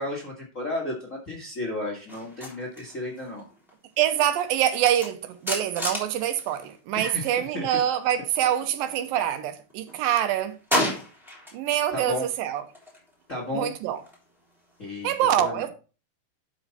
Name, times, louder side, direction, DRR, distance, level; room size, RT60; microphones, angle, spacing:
voice 1, 0.0-3.4 6.9-7.3 7.5-7.7 11.9-12.2 13.3-13.7 14.8-15.1 15.4-15.6, left 2 dB, 40° left, 1.1 m, -33 dB
sound 1, 2.1-7.4 7.7-9.3 9.7-11.8 12.1-14.9, left 1 dB, ahead, 2.9 m, -35 dB
voice 2, 4.0-10.6 11.5-12.6 13.5-14.0 15.0-15.7, right 11 dB, 80° right, 2.5 m, -25 dB
11.5 x 5.1 x 4.0 m
omnidirectional pair, 4.2 m